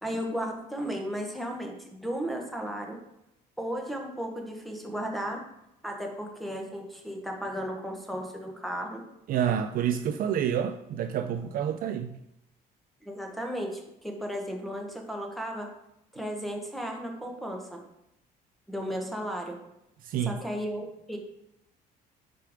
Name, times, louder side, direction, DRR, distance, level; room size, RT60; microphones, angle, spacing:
voice 1, 0.0-3.0 3.6-5.4 5.8-9.0 13.0-15.7 16.1-17.8 18.7-19.6 20.3-21.2, equal, ahead, 0 dB, 1.1 m, -34 dB
voice 2, 9.3-12.2 20.0-20.4, right 9 dB, 60° right, 8 dB, 0.4 m, -28 dB
5.0 x 4.5 x 4.9 m, 0.84 s
cardioid pair, 110°, 17 cm